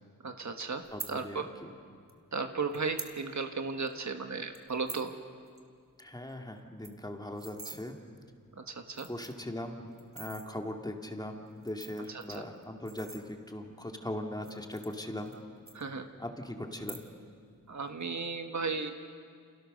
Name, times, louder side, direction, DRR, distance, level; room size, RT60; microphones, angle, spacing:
voice 1, 0.2-1.5 2.3-5.1 8.6-9.1 12.1-12.5 15.7-16.1 17.7-18.9, right 4 dB, 55° right, 6 dB, 1.6 m, -35 dB
sound 1, 0.8-1.1 2.1-2.2 2.7-3.2 3.5-3.6 3.9-4.1 4.5-5.1 5.5-5.6 5.9-6.0 6.3-6.4 6.6-7.8 8.5-8.6 8.9-9.5 10.0-10.5 11.5-13.6 14.3-15.4 15.7-16.3 16.7-17.3 17.6-18.0, right 4 dB, 40° right, 2.0 m, -45 dB
voice 2, 0.9-1.7 6.0-8.0 9.0-15.3 16.2-17.1, left 1 dB, 10° left, 3 dB, 2.3 m, -40 dB
29.5 x 29.0 x 6.6 m, 2.1 s
wide cardioid pair, 120°, 34 cm